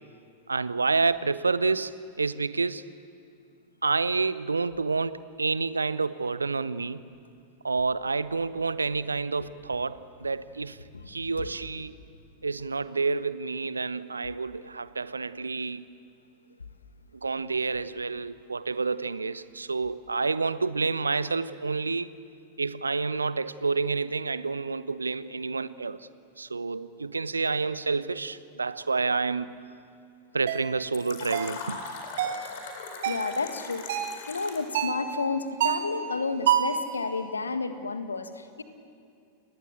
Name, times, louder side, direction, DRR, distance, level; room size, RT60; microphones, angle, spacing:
voice 1, 0.5-2.9 3.8-7.0 7.6-10.8 11.1-11.9 12.4-15.9 17.2-22.1 22.6-26.1 26.4-29.6 30.3-31.8, right 4 dB, 80° right, 17 dB, 0.7 m, -29 dB
sound 1, 30.5-30.7 31.3-31.6 32.2-32.5 33.0-33.3 33.9-34.2 34.7-35.0 35.6-35.9 36.5-36.8, right 10 dB, 55° right, 2.1 m, -26 dB
Fill (with liquid), 30.9-34.8, left 4 dB, 55° left, 4.5 m, -40 dB
voice 2, 33.0-38.6, left 4 dB, 75° left, 9 dB, 1.6 m, -31 dB
29.5 x 20.5 x 8.9 m, 2.4 s
figure-of-eight pair, 90°, 0 cm